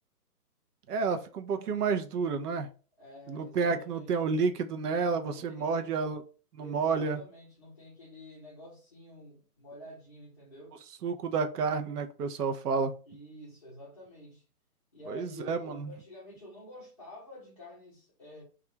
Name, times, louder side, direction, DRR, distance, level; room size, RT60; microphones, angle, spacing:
voice 1, 0.9-2.7 3.3-6.2 6.5-7.2 11.0-12.9 15.1-15.9, right 5 dB, 80° right, 0.6 m, -30 dB
voice 2, 3.0-4.2 5.2-5.9 6.6-10.7 13.1-14.4 14.9-18.4, left 1 dB, 25° left, 0.5 m, -49 dB
2.4 x 2.2 x 2.7 m
hypercardioid pair, 160°, 47 cm